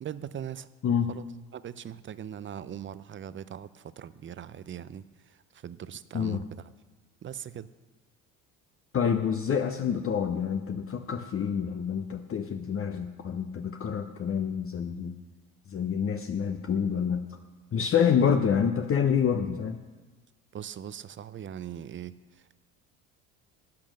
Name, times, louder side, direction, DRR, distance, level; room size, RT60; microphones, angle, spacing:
voice 1, 0.0-0.7 1.1-6.7 7.2-7.7 20.5-22.2, right 9 dB, 30° right, 16 dB, 0.6 m, -40 dB
voice 2, 8.9-15.1 15.7-17.2 17.7-19.8, left 7 dB, 35° left, 6 dB, 0.8 m, -27 dB
11.5 x 8.7 x 6.4 m, 1.3 s
supercardioid pair, 75°, 38 cm